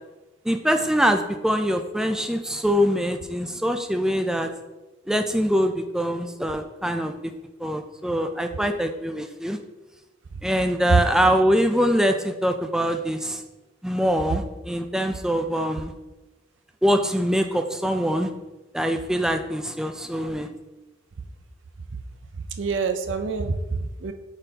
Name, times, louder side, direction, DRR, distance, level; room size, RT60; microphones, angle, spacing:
voice 1, 0.4-4.5 5.1-7.3 7.6-9.6 10.4-13.4 13.8-15.9 16.8-18.3 18.7-20.5, equal, 5° right, 5 dB, 0.4 m, -23 dB
voice 2, 22.4-24.1, right 4 dB, 70° right, 7 dB, 0.5 m, -25 dB
8.9 x 4.1 x 2.8 m, 1.1 s
head